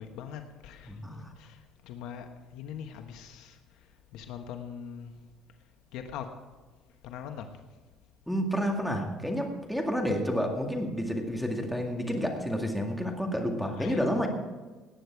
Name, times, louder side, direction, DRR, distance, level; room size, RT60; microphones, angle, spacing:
voice 1, 0.0-5.1 5.9-6.4 7.0-7.6 13.8-14.3, left 8 dB, 75° left, 5 dB, 1.2 m, -42 dB
voice 2, 0.9-1.3 8.3-14.3, equal, ahead, 1 dB, 2.1 m, -30 dB
18.0 x 9.7 x 4.8 m, 1.3 s
cardioid pair, 135°, 0 cm